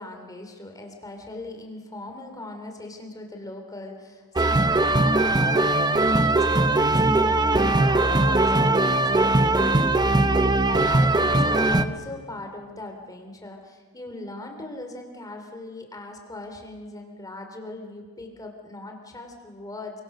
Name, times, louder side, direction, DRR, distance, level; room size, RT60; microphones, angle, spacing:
voice 1, 0.0-5.8 6.1-20.0, left 2 dB, 15° left, 3 dB, 3.0 m, -40 dB
sound 1, 4.4-11.9, right 2 dB, 20° right, 0.8 m, -20 dB
29.0 x 24.0 x 6.6 m, 1.5 s
head